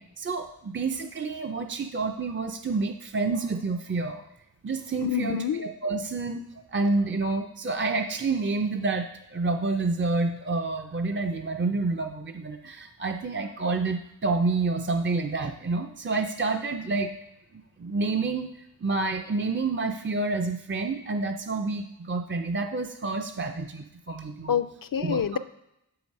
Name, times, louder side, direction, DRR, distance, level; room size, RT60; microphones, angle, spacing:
voice 1, 0.2-4.2 4.6-6.4 6.7-17.1 17.8-18.5 18.8-24.6 25.0-25.2, right 3 dB, 30° right, 5 dB, 0.4 m, -28 dB
voice 2, 5.0-5.7 24.5-25.4, left 8 dB, 55° left, 13 dB, 0.5 m, -27 dB
7.4 x 4.8 x 5.3 m, 0.83 s
wide cardioid pair, 45°, 41 cm